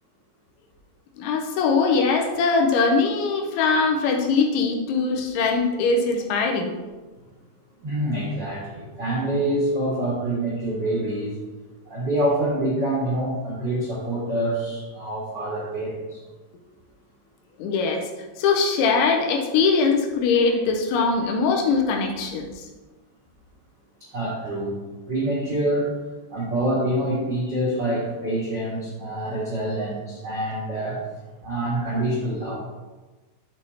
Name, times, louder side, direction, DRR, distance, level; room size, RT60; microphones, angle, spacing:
voice 1, 1.2-6.7 17.6-18.1 18.4-22.7, left 4 dB, 80° left, 3 dB, 3.2 m, -21 dB
voice 2, 7.8-11.4 11.8-16.2 24.0-24.8 25.1-25.9 26.3-31.0 31.4-32.6, right 1 dB, 55° right, -8 dB, 1.2 m, -26 dB
11.0 x 6.3 x 2.8 m, 1.2 s
omnidirectional pair, 5.4 m